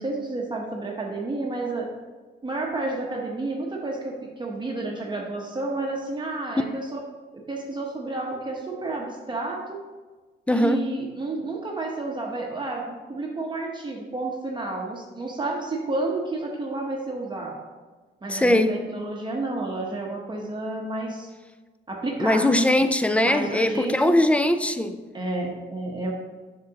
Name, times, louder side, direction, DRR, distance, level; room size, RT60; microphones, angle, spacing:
voice 1, 0.0-1.9 2.4-7.0 7.5-9.8 10.5-17.6 18.2-21.3 21.9-22.5 23.2-24.2 25.1-26.1, right 2 dB, 25° right, 0.9 m, -30 dB
voice 2, 10.5-10.9 18.3-18.9 22.2-25.0, left 1 dB, 5° left, 0.5 m, -21 dB
7.4 x 5.9 x 2.9 m
cardioid pair, 90°, 20 cm